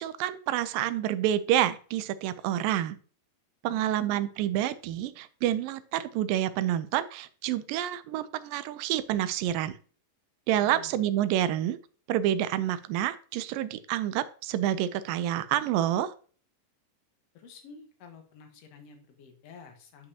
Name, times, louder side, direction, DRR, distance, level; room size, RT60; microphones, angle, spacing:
voice 1, 0.0-3.0 3.6-9.7 10.5-11.8 12.1-16.1, right 12 dB, 85° right, 14 dB, 2.2 m, -28 dB
voice 2, 3.7-4.3 10.6-11.0 17.3-20.1, left 6 dB, 55° left, 4 dB, 2.1 m, -50 dB
10.0 x 5.3 x 2.8 m, 0.42 s
omnidirectional pair, 4.0 m